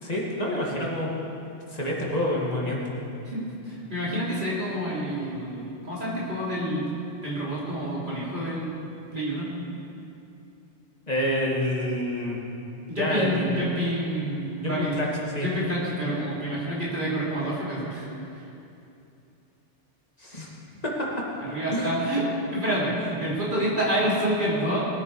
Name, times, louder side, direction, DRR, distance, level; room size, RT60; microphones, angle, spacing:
voice 1, 0.0-1.1 1.7-3.0 11.1-12.4 12.9-13.6 14.6-15.1 15.3-15.5 20.2-20.5 20.8-20.9 21.7-21.9, left 1 dB, 35° left, -4 dB, 2.5 m, -27 dB
voice 2, 3.3-6.9 7.2-8.7 9.1-9.5 12.9-15.0 15.3-18.1 18.4-18.5 21.4-22.2 22.5-24.8, equal, 45° right, -7 dB, 3.7 m, -28 dB
20.5 x 9.6 x 4.9 m, 2.7 s
omnidirectional pair, 1.2 m